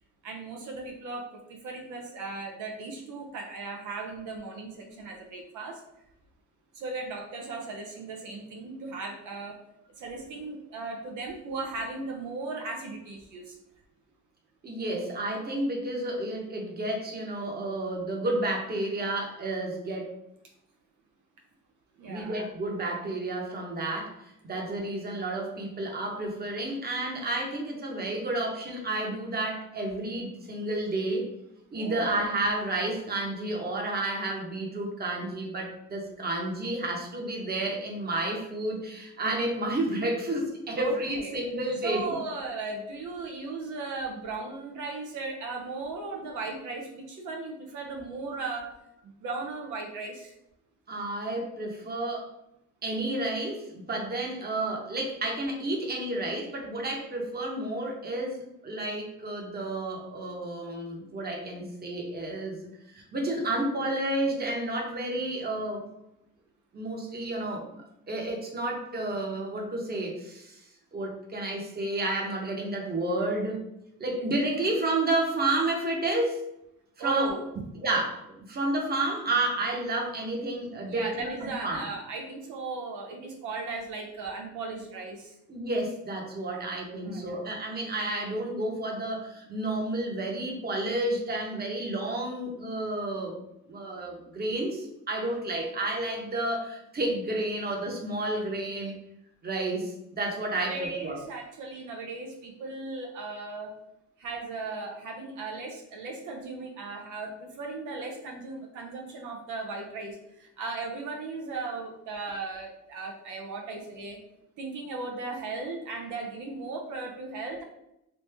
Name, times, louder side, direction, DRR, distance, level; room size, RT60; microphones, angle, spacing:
voice 1, 0.2-5.8 6.7-9.6 10.0-13.6 22.0-22.4 31.7-32.3 40.7-41.3 41.8-48.7 49.0-50.3 77.0-77.5 80.9-85.4 86.5-86.6 86.9-87.3 100.6-103.7 104.2-114.2 114.6-117.6, right 3 dB, 80° right, 1 dB, 0.7 m, -37 dB
voice 2, 14.6-20.1 22.1-31.3 31.7-42.2 50.9-52.3 52.8-62.6 62.9-65.9 66.7-70.6 70.9-73.6 74.0-76.4 77.0-77.4 77.8-81.9 85.5-93.4 93.7-98.9 99.4-101.2, right 2 dB, 30° right, 0 dB, 1.0 m, -31 dB
3.2 x 2.7 x 3.3 m, 0.83 s
cardioid pair, 90°, 30 cm